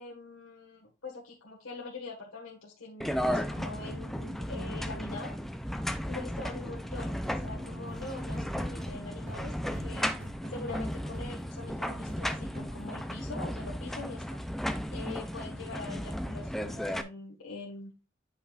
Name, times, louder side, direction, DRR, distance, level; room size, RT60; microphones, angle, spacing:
voice 1, 0.0-5.4 6.1-10.1 10.5-14.4 14.9-17.9, left 3 dB, 85° left, -2 dB, 1.5 m, -43 dB
sound 1, 3.0-17.0, equal, ahead, 0.4 m, -35 dB
sound 2, 7.4-13.0, equal, 55° right, 2.6 m, -47 dB
9.8 x 5.5 x 2.4 m, 0.29 s
head